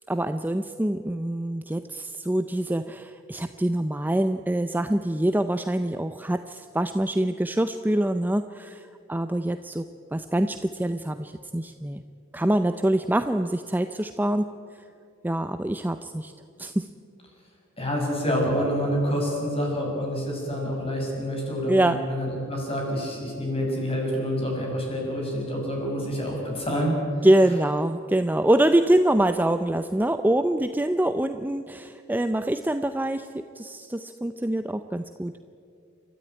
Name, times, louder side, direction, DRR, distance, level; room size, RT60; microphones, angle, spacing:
voice 1, 0.1-9.9 10.1-12.0 12.3-14.5 15.2-16.3 16.6-16.9 21.7-22.0 27.2-35.3, right 1 dB, 10° right, 9 dB, 0.5 m, -25 dB
voice 2, 17.8-26.9 27.2-27.3, equal, 30° left, -1 dB, 6.8 m, -27 dB
29.5 x 13.5 x 9.4 m, 2.4 s
head